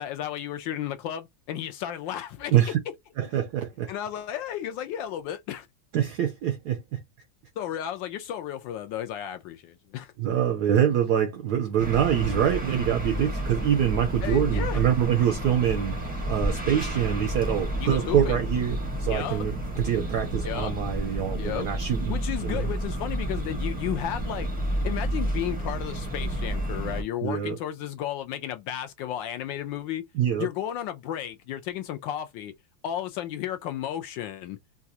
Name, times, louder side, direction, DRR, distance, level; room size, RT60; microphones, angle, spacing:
voice 1, 0.0-2.5 3.9-5.7 7.6-10.1 14.2-14.8 17.8-18.4 19.1-19.5 20.4-20.7 21.4-21.7 22.1-24.5 24.8-30.0 30.4-32.5 32.8-34.6, left 11 dB, 75° left, 1.2 m, -33 dB
voice 2, 3.2-3.9 5.9-7.0 10.2-16.0 16.3-22.2 22.4-22.7 27.2-27.6 30.1-30.5, right 9 dB, 75° right, 0.9 m, -25 dB
sound 1, 11.8-27.0, right 1 dB, 5° right, 0.7 m, -30 dB
4.0 x 2.3 x 2.7 m
omnidirectional pair, 2.2 m